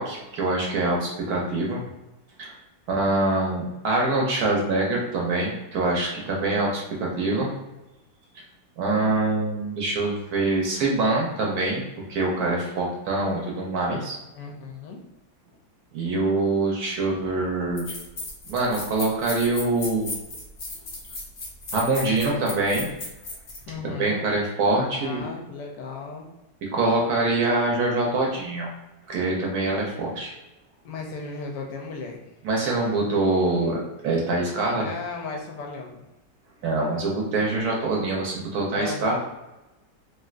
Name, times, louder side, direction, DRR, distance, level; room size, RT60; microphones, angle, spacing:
voice 1, 0.0-1.8 2.4-2.5 2.9-7.5 8.8-11.8 12.1-14.2 15.9-17.9 18.5-20.1 21.7-22.9 23.8-25.2 26.6-28.7 29.1-30.3 32.4-34.9 36.6-39.2, right 2 dB, 70° right, -2 dB, 1.0 m, -24 dB
voice 2, 14.3-15.0 23.7-24.3 24.9-26.3 30.8-32.2 34.7-36.0 38.8-39.2, left 4 dB, 75° left, 0 dB, 1.1 m, -35 dB
sound 1, 17.8-23.6, left 2 dB, 60° left, 0.7 m, -35 dB
3.2 x 2.6 x 2.4 m, 1.0 s
omnidirectional pair, 1.9 m